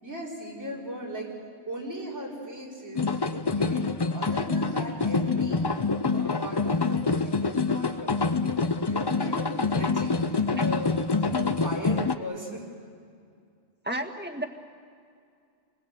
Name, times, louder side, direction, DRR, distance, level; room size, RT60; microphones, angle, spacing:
voice 1, 0.0-1.3 1.7-5.7 6.1-8.5 8.9-12.6, equal, 85° right, -5 dB, 5.0 m, -38 dB
sound 1, 3.0-12.2, left 4 dB, 25° left, 0.6 m, -26 dB
voice 2, 13.8-14.5, right 1 dB, 10° right, 4 dB, 1.7 m, -31 dB
28.0 x 20.5 x 8.1 m, 2.3 s
omnidirectional pair, 1.2 m